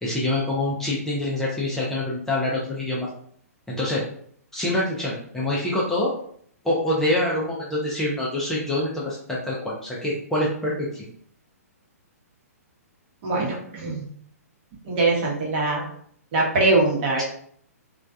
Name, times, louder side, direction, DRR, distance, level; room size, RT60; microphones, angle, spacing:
voice 1, 0.0-3.1 3.7-4.0 4.5-6.1 6.6-11.1, left 1 dB, 5° left, -6 dB, 0.4 m, -25 dB
voice 2, 13.2-14.0 14.8-15.8 16.3-17.2, right 2 dB, 40° right, -3 dB, 0.9 m, -22 dB
2.3 x 2.2 x 2.5 m, 0.63 s
hypercardioid pair, 125°, 9 cm